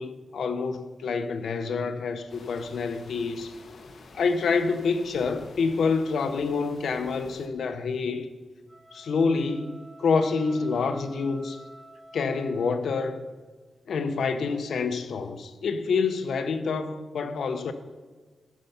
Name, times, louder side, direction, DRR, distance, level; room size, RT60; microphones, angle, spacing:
voice 1, 0.0-3.5 4.1-8.3 8.9-11.6 12.1-13.2 13.9-17.7, left 4 dB, 80° left, 0.7 m, -27 dB
sound 1, 2.3-7.5, left 3 dB, 65° left, 1.1 m, -50 dB
sound 2, 8.6-13.2, right 1 dB, 15° right, 2.3 m, -50 dB
14.0 x 6.7 x 5.7 m
wide cardioid pair, 100°, 0 cm